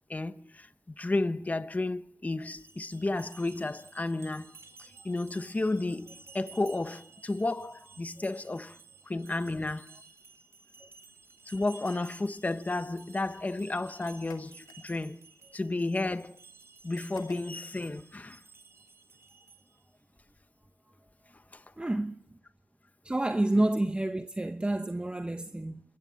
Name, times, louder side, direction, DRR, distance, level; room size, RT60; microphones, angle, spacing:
voice 1, 0.1-4.5 4.8-8.8 9.1-9.9 11.5-15.2 15.5-16.4 16.8-18.4 21.5-21.9 23.5-23.6, left 2 dB, 25° left, 1.0 m, -32 dB
sound 1, 2.4-19.9, right 4 dB, 40° right, 3.9 m, -55 dB
sound 2, 14.0-15.3 16.9-17.8, left 8 dB, 85° left, 1.8 m, -52 dB
voice 2, 21.8-22.2 23.0-25.8, right 1 dB, 15° right, 1.1 m, -29 dB
27.0 x 15.0 x 9.3 m
cardioid pair, 55°, 7 cm